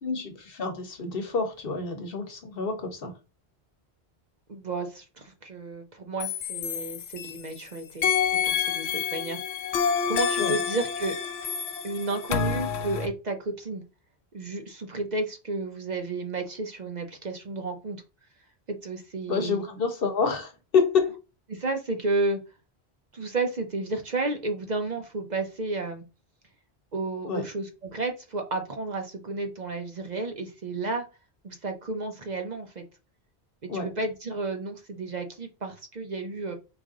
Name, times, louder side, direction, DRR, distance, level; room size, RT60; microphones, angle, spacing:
voice 1, 0.0-3.1 10.4-10.6 19.3-21.1 27.3-27.4 33.7-33.9, left 5 dB, 60° left, 1.1 m, -28 dB
voice 2, 4.5-9.4 10.0-11.2 11.8-13.8 14.3-18.0 18.7-19.6 21.5-22.4 23.1-26.0 26.9-31.1 31.4-32.8 33.7-36.5, right 3 dB, 45° right, 0.7 m, -32 dB
sound 1, 6.2-7.6 8.0-13.1, left 7 dB, 85° left, 0.9 m, -28 dB
4.8 x 2.6 x 3.7 m
omnidirectional pair, 1.1 m